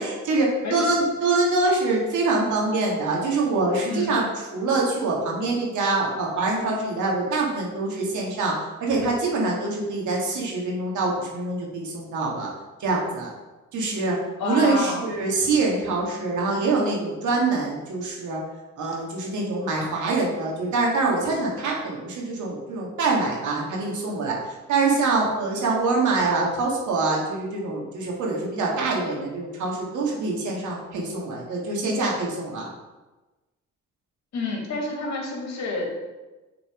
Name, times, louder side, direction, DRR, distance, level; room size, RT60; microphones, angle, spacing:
voice 1, 0.0-4.2 4.5-12.5 12.8-13.3 13.7-14.2 14.4-18.4 18.8-32.7, right 3 dB, 75° right, -2 dB, 1.9 m, -25 dB
voice 2, 3.9-4.2 14.4-15.0 34.3-35.9, left 3 dB, 65° left, 0 dB, 2.1 m, -29 dB
6.8 x 4.0 x 5.0 m, 1.1 s
cardioid pair, 90°, 30 cm